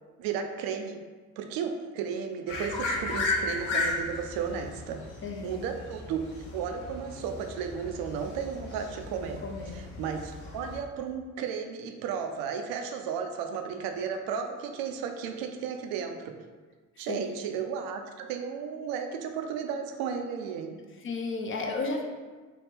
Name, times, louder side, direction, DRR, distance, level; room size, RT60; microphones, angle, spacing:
voice 1, 0.2-1.0 1.4-5.0 5.4-6.2 6.5-9.4 9.7-16.3 17.0-20.8, right 7 dB, 55° right, 5 dB, 0.5 m, -34 dB
sound 1, 2.5-10.8, left 3 dB, 65° left, 0.7 m, -35 dB
voice 2, 5.2-5.6 9.4-9.9 17.0-17.2 21.0-22.0, left 3 dB, 30° left, 1 dB, 0.5 m, -33 dB
2.9 x 2.4 x 3.4 m, 1.4 s
figure-of-eight pair, 45°, 43 cm